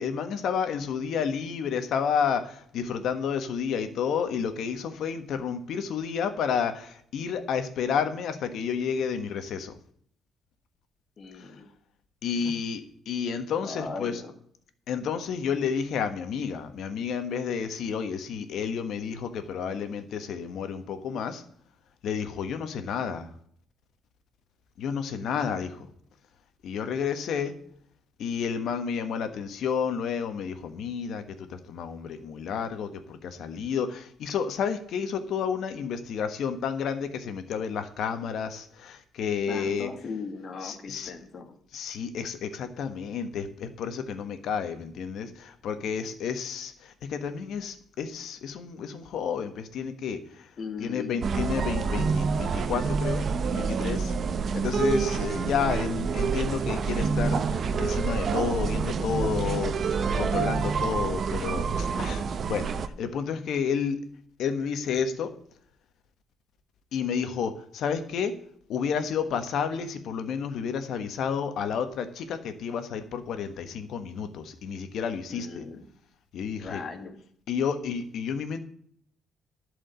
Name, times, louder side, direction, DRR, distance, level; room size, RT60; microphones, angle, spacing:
voice 1, 0.0-9.8 11.3-11.5 12.2-14.2 14.9-21.4 22.0-23.3 24.8-25.9 26.6-27.5 28.2-39.9 40.6-41.1 41.7-50.5 50.8-54.1 54.5-64.0 64.4-65.3 66.9-68.4 68.7-75.6 76.3-76.8 77.5-78.6, left 7 dB, 75° left, 9 dB, 1.3 m, -31 dB
voice 2, 11.2-11.7 13.6-14.3 39.5-41.6 50.6-51.2 75.3-75.8 76.6-77.2, left 4 dB, 50° left, 5 dB, 2.0 m, -38 dB
sound 1, 51.2-62.9, right 5 dB, 55° right, 0.8 m, -27 dB
11.5 x 5.0 x 8.1 m, 0.65 s
cardioid pair, 90°, 0 cm